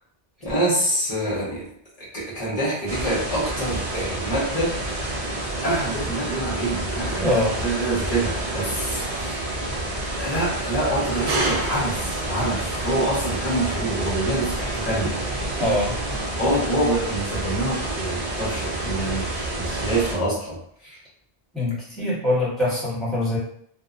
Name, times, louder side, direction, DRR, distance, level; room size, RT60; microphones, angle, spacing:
voice 1, 0.4-1.7 2.0-4.7 5.6-9.4 10.2-15.1 16.4-20.6 20.8-21.0, right 1 dB, 40° left, -7 dB, 1.1 m, -26 dB
sound 1, 2.9-20.2, right 1 dB, 50° right, 0.5 m, -29 dB
voice 2, 7.2-7.5 15.6-15.9 21.5-23.4, left 1 dB, ahead, -9 dB, 1.1 m, -23 dB
sound 2, 11.3-16.3, right 2 dB, 85° right, 0.9 m, -32 dB
2.7 x 2.1 x 2.4 m, 0.66 s
omnidirectional pair, 1.0 m